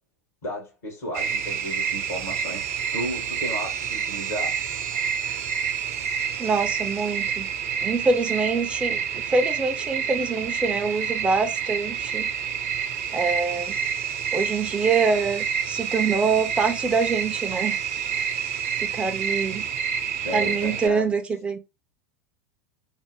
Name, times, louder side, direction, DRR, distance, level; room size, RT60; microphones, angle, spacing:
voice 1, 0.4-4.6 20.2-21.2, equal, 65° left, 1.4 m, -34 dB
sound 1, 1.1-20.9, right 7 dB, 55° right, 0.6 m, -28 dB
voice 2, 6.4-7.5 7.8-12.3 12.7-12.8 13.1-13.7 14.3-17.8 18.1-19.6 20.3-21.6, right 4 dB, 10° right, 0.5 m, -25 dB
3.7 x 2.0 x 3.3 m
figure-of-eight pair, 85°, 9 cm